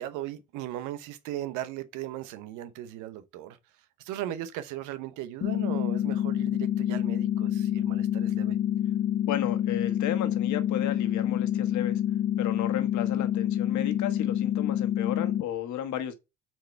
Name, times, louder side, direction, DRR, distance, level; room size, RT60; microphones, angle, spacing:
voice 1, 0.0-3.6 4.0-8.6, right 13 dB, 85° right, 0.9 m, -37 dB
sound 1, 5.4-15.4, left 11 dB, 55° left, 0.8 m, -27 dB
voice 2, 9.3-12.0 12.4-16.1, left 11 dB, 70° left, 1.3 m, -33 dB
4.7 x 4.5 x 5.5 m
supercardioid pair, 85°, 30 cm